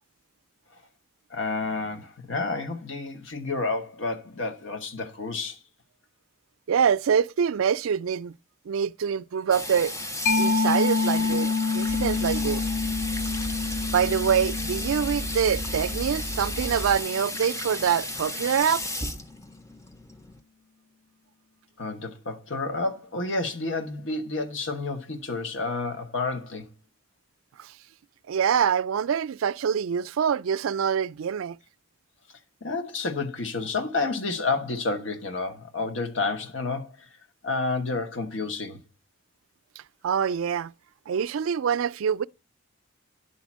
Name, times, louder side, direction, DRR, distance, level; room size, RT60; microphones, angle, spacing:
voice 1, 1.3-5.6 21.8-26.7 32.6-37.1 37.4-38.8, left 3 dB, 70° left, 1.2 m, -30 dB
voice 2, 6.7-8.3 8.7-10.0 10.4-12.6 13.9-18.8 27.6-27.7 28.3-31.6 40.0-40.7 41.1-42.3, right 7 dB, 90° right, 0.4 m, -25 dB
Water tap faucet / Sink (filling or washing), 9.5-20.4, left 1 dB, 15° left, 0.5 m, -35 dB
Mallet percussion, 10.3-17.5, left 4 dB, 85° left, 0.7 m, -28 dB
sound 1, 11.9-17.0, right 1 dB, 40° left, 1.9 m, -35 dB
10.5 x 4.3 x 7.2 m
head